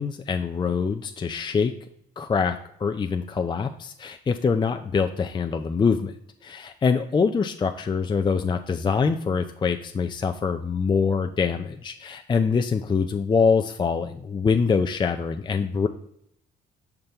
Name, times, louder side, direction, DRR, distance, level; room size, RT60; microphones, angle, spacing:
voice 1, 0.0-1.7 2.2-6.1 6.4-15.9, left 5 dB, 25° left, 5 dB, 0.4 m, -24 dB
5.9 x 5.2 x 3.4 m, 0.71 s
cardioid pair, 80°, 19 cm